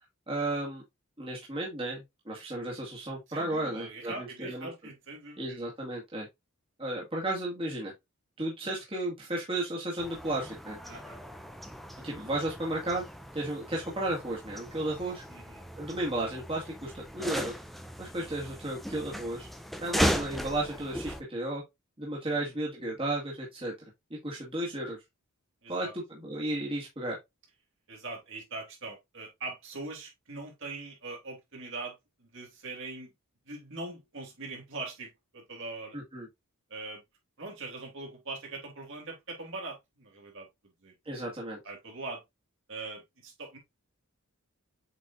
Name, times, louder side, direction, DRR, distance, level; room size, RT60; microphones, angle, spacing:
voice 1, 0.3-0.8 1.2-4.7 5.4-6.3 6.8-7.9 8.4-10.8 12.0-13.0 13.3-15.2 15.8-17.5 18.0-19.5 19.8-21.6 22.0-23.7 24.2-25.0 25.7-27.2 35.9-36.3 41.1-41.6, right 1 dB, 25° right, 2.1 m, -34 dB
voice 2, 3.3-5.7 10.8-11.2 15.3-15.7 25.6-25.9 27.9-33.1 33.4-36.0 36.7-37.0 37.4-40.5 40.8-40.9 41.6-42.2 42.7-43.6, right 3 dB, 55° right, 3.3 m, -42 dB
sound 1, 10.0-21.2, equal, ahead, 0.6 m, -36 dB
7.8 x 4.9 x 2.6 m
head